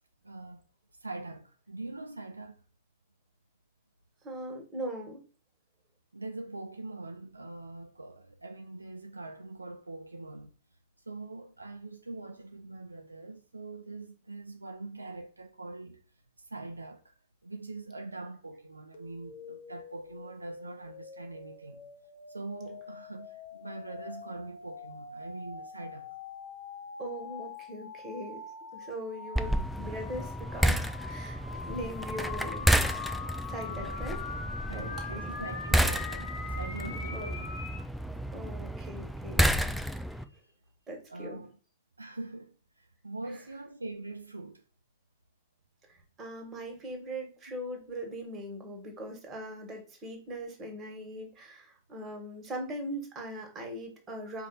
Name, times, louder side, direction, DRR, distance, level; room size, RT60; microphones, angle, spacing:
voice 1, 0.2-0.6 1.0-2.6 6.1-10.5 11.1-16.0 16.4-17.1 17.4-21.9 22.3-26.1 33.7-34.0 34.7-37.5 40.2-40.5 41.1-41.6 42.0-44.6, right 2 dB, 90° right, 0.4 m, -43 dB
voice 2, 4.2-5.2 27.0-28.4 28.7-32.7 33.5-34.2 34.7-35.3 37.1-37.3 38.3-39.5 40.9-41.4 45.8-54.5, right 1 dB, 25° right, 1.6 m, -40 dB
sound 1, 18.9-37.8, left 5 dB, 55° left, 0.9 m, -43 dB
sound 2, 29.4-40.2, equal, ahead, 0.4 m, -31 dB
4.7 x 2.6 x 4.0 m
figure-of-eight pair, 100°, 0 cm